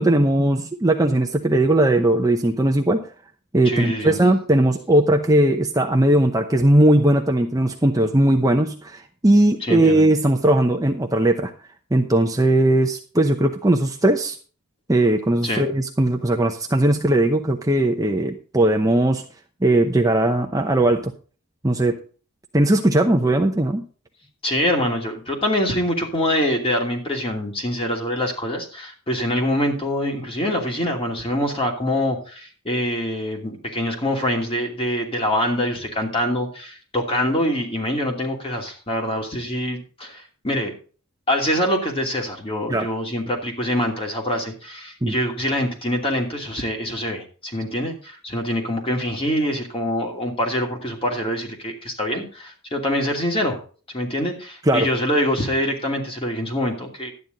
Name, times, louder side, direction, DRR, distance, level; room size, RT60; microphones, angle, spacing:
voice 1, 0.0-3.1 3.5-11.5 11.9-14.4 14.9-19.2 19.6-21.1 21.6-22.0 22.5-23.8 42.7-42.9 45.0-45.1 54.7-54.9, right 1 dB, 15° right, 3 dB, 0.8 m, -18 dB
voice 2, 3.6-4.2 9.6-10.0 15.4-15.7 24.4-40.7 41.3-53.6 53.9-57.1, equal, 25° left, 1 dB, 2.7 m, -24 dB
12.0 x 9.6 x 3.9 m, 0.39 s
head